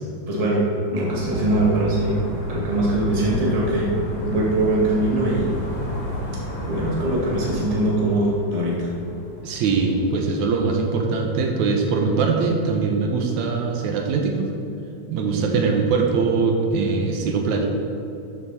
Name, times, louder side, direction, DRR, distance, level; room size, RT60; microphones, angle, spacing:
voice 1, 0.3-2.2 2.5-3.9 4.2-5.5 6.7-8.9 15.3-15.6, right 1 dB, 15° right, -5 dB, 1.5 m, -22 dB
sound 1, 1.1-7.8, left 1 dB, 55° left, 3.6 m, -31 dB
sound 2, 1.9-11.0, equal, 40° left, 2.7 m, -41 dB
voice 2, 9.4-14.5 15.1-17.7, right 4 dB, 75° right, 2 dB, 2.2 m, -22 dB
12.5 x 7.1 x 4.2 m, 2.8 s
omnidirectional pair, 3.4 m